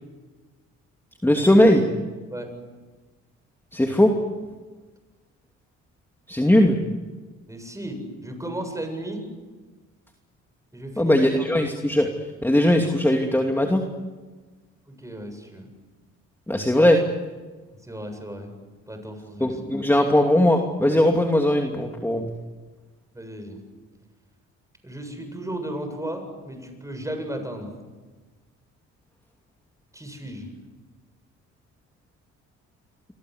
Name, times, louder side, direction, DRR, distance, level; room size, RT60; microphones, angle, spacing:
voice 1, 1.2-1.9 3.7-4.1 6.3-6.8 11.0-12.1 12.4-13.8 16.5-17.0 19.4-22.3, left 1 dB, 5° left, 3 dB, 2.7 m, -19 dB
voice 2, 7.5-9.3 10.7-11.2 14.9-15.7 17.8-18.5 18.9-19.6 23.1-23.6 24.8-27.7 29.9-30.5, right 1 dB, 10° right, 6 dB, 7.6 m, -35 dB
28.5 x 23.5 x 8.1 m, 1.3 s
cardioid pair, 90°, 30 cm